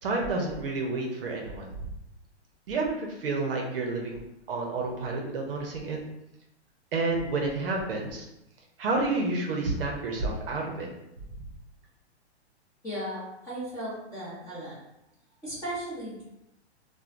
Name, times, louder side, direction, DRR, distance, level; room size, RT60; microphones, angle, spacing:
voice 1, 0.0-1.8 2.7-4.2 4.5-6.0 6.9-8.3 8.8-10.9, right 3 dB, 55° right, 1 dB, 0.7 m, -30 dB
voice 2, 12.8-14.7 15.4-16.2, right 1 dB, 10° left, -10 dB, 0.7 m, -36 dB
3.0 x 2.1 x 2.5 m, 0.87 s
hypercardioid pair, 155°, 34 cm